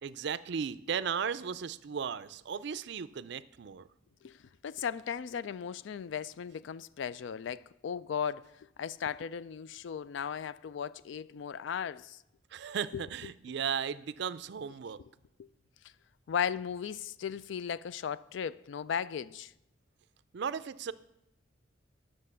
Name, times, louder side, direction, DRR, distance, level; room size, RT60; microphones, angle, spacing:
voice 1, 0.0-3.9 12.5-15.0 20.3-20.9, right 7 dB, 60° right, 0.4 m, -36 dB
voice 2, 4.6-12.2 12.9-13.0 15.4-15.5 16.3-19.5, left 7 dB, 65° left, 0.3 m, -36 dB
9.7 x 6.5 x 6.8 m
head